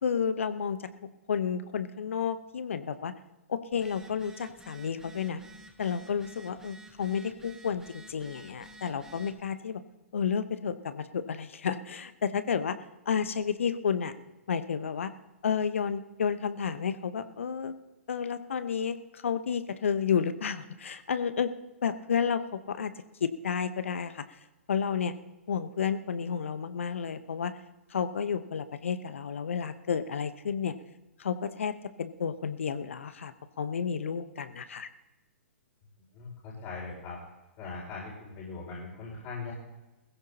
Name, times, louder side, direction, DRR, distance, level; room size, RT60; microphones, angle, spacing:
voice 1, 0.0-0.9 1.3-3.1 3.5-5.4 5.8-9.8 10.1-12.8 13.1-14.1 14.5-15.1 15.4-17.7 18.1-21.5 21.8-22.9 23.2-24.2 24.7-25.1 25.5-27.5 27.9-30.7 31.2-34.9, left 7 dB, 65° left, 12 dB, 1.0 m, -31 dB
Telephone, 3.7-9.4, right 1 dB, 5° right, 1.4 m, -51 dB
voice 2, 36.1-37.2 37.6-39.5, left 4 dB, 35° left, -5 dB, 5.2 m, -40 dB
21.0 x 15.5 x 2.9 m, 1.1 s
figure-of-eight pair, 115°, 7 cm